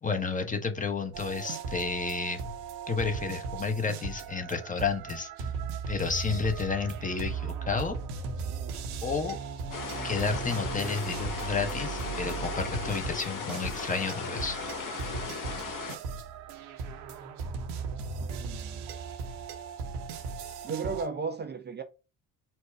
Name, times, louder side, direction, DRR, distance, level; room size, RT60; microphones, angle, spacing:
voice 1, 0.0-2.6 2.9-5.3 5.9-8.0 9.0-9.4 10.0-14.6, left 4 dB, 20° left, 0.8 m, -31 dB
sound 1, 1.1-21.1, right 5 dB, 65° right, 0.7 m, -37 dB
sound 2, 9.7-16.0, left 5 dB, 45° left, 1.0 m, -37 dB
voice 2, 18.2-18.8 20.6-21.8, right 5 dB, 25° right, 0.5 m, -35 dB
4.3 x 2.2 x 4.3 m
figure-of-eight pair, 45°, 44 cm